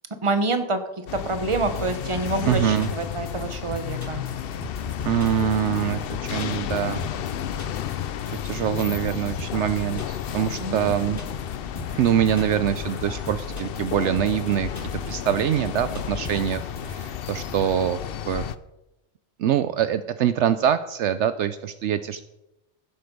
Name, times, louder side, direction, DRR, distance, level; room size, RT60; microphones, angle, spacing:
voice 1, 0.2-4.3 10.6-11.2, right 3 dB, 25° right, 8 dB, 1.1 m, -27 dB
sound 1, 1.1-18.6, left 10 dB, 60° left, 0.7 m, -32 dB
sound 2, 1.5-17.5, left 1 dB, 45° left, 2.0 m, -42 dB
voice 2, 2.4-2.9 5.1-7.0 8.3-11.2 11.9-18.0 18.3-18.4 19.4-22.3, right 10 dB, 70° right, 12 dB, 0.8 m, -24 dB
sound 3, 2.5-2.6 2.8-3.2 3.4-3.5 3.7-4.4 4.6-4.9 5.2-5.8 6.1-7.3 7.6-7.9 8.2-8.3 8.5-8.6 8.8-9.1 9.4-9.7 10.0-10.6 10.9-11.5 11.8-12.1 12.4-12.7 13.0-13.1 13.3-13.9 14.2-14.5 14.8-15.4 15.7-15.8 15.9-16.9, equal, 15° left, 1.6 m, -39 dB
16.0 x 7.7 x 5.3 m, 0.95 s
omnidirectional pair, 1.3 m